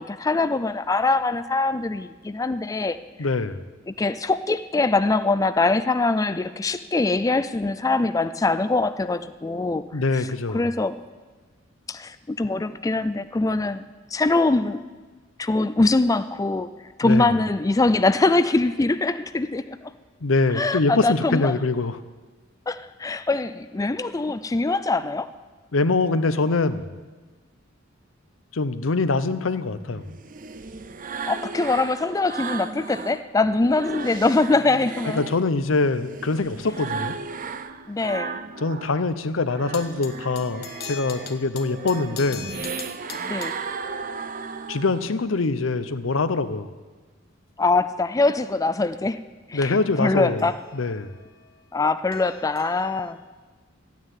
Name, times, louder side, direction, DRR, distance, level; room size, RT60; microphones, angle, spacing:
voice 1, 0.0-3.0 3.9-9.8 10.1-10.2 10.5-11.0 11.9-14.8 15.4-16.7 17.0-19.8 20.5-21.6 22.7-25.3 31.3-35.2 37.9-38.4 43.2-43.5 47.6-49.2 49.5-50.6 51.7-53.2, left 3 dB, 15° left, 12 dB, 0.4 m, -23 dB
voice 2, 3.2-3.6 9.9-10.7 17.0-17.3 20.2-22.0 25.7-27.0 28.5-30.0 35.1-37.2 38.6-42.5 44.7-46.7 49.5-50.4 50.7-51.1, left 3 dB, 85° left, 12 dB, 0.8 m, -24 dB
sound 1, 29.8-33.2 33.6-39.0 39.3-45.2, right 5 dB, 45° right, 0.7 m, -35 dB
sound 2, 39.6-43.8 50.4-53.1, left 7 dB, 55° left, 1.2 m, -42 dB
13.0 x 9.5 x 9.1 m, 1.3 s
head